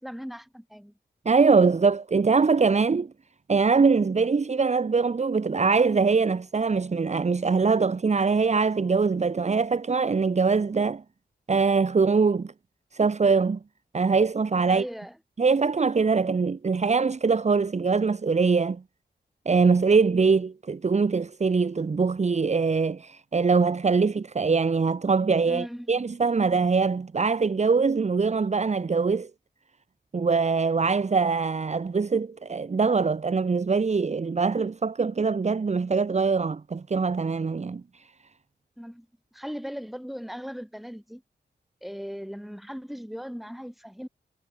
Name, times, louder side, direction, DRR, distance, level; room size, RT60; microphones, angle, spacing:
voice 1, 0.0-0.9 14.7-15.2 25.4-26.0 38.8-39.1 39.3-41.2 41.8-44.1, equal, ahead, 4.7 m, -38 dB
voice 2, 1.2-3.1 3.5-11.0 11.5-12.5 12.9-13.6 13.9-14.8 15.4-18.8 19.4-29.3 30.1-37.8, right 4 dB, 40° right, 1.5 m, -23 dB
wide cardioid pair, 135°, 18 cm